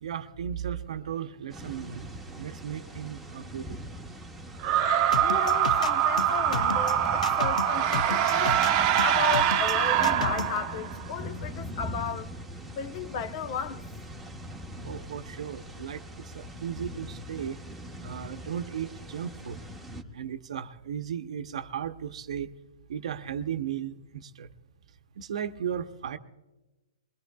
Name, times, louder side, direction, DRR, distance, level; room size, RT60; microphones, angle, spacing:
voice 1, 0.0-3.8 14.8-17.6 18.0-19.6 20.1-22.5 22.9-24.5 25.2-26.2, right 8 dB, 65° right, 0.9 m, -36 dB
sound 1, 1.5-20.0, equal, 5° right, 1.0 m, -41 dB
sound 2, 4.6-11.0, right 10 dB, 35° right, 0.9 m, -24 dB
sound 3, 5.1-10.6, left 6 dB, 80° left, 0.5 m, -33 dB
voice 2, 5.2-8.6 9.0-12.3 12.7-13.8, left 7 dB, 40° left, 0.9 m, -34 dB
22.5 x 20.0 x 2.3 m
hypercardioid pair, 140°, 4 cm